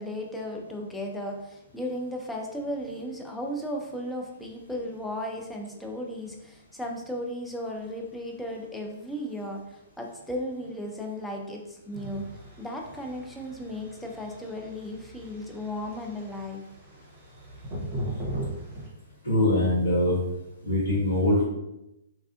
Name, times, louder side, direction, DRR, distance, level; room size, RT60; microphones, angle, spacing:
voice 1, 0.0-12.3 12.6-16.6, left 1 dB, 5° left, 0 dB, 0.4 m, -35 dB
sound 1, 11.9-18.9, right 1 dB, 30° right, 0.8 m, -39 dB
voice 2, 19.2-20.2 20.6-21.4, left 1 dB, 70° left, -12 dB, 1.5 m, -23 dB
3.2 x 2.4 x 2.3 m, 0.89 s
figure-of-eight pair, 115°, 0 cm